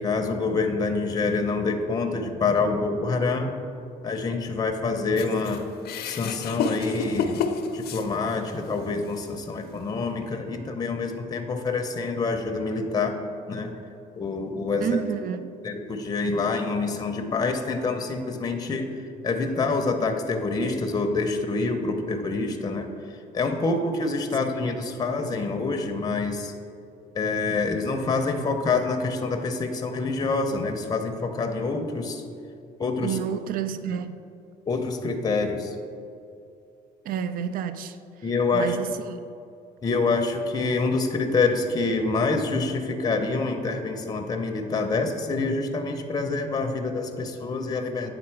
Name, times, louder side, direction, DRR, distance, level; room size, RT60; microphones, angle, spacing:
voice 1, 0.0-3.5 4.0-5.6 6.0-7.4 7.7-13.2 13.5-13.7 14.1-15.0 15.6-18.9 19.2-26.5 27.1-32.2 32.8-33.2 34.7-35.8 38.2-38.8 39.8-48.1, left 3 dB, 25° left, 5 dB, 0.6 m, -26 dB
sound 1, 5.2-8.6 9.1-9.2 10.2-10.3, left 5 dB, 70° left, 0.5 m, -30 dB
voice 2, 14.8-15.6 33.0-34.2 37.0-38.0 38.5-39.2, right 8 dB, 60° right, 12 dB, 0.4 m, -30 dB
8.6 x 3.9 x 4.5 m, 2.5 s
cardioid pair, 110°, 17 cm